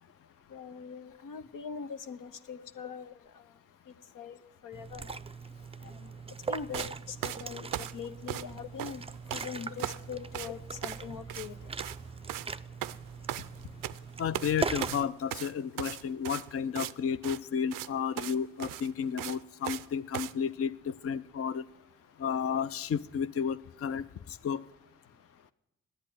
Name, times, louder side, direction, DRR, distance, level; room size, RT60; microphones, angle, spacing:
voice 1, 0.5-3.1 4.2-4.4 4.6-5.0 6.5-6.9 7.2-7.7 7.9-9.0 9.3-11.5, left 6 dB, 75° left, 9 dB, 0.8 m, -41 dB
Liquid, 4.7-15.0, right 4 dB, 20° right, 0.4 m, -40 dB
sound 1, 6.7-6.9 7.2-8.5 8.8-9.5 9.8-10.1 10.3-10.5 10.8-11.0 11.3-11.5 11.7-12.0 12.3-12.5 12.8-14.0 14.3-14.5 14.8-16.9 17.2-17.4 17.7-17.9 18.2-18.3 18.6-19.9 20.1-20.3, right 13 dB, 80° right, 0.5 m, -37 dB
voice 2, 14.2-21.6 22.2-24.0 24.3-24.6, left 7 dB, 45° left, 13 dB, 0.5 m, -32 dB
10.0 x 8.2 x 10.0 m, 0.90 s
supercardioid pair, 40°, 33 cm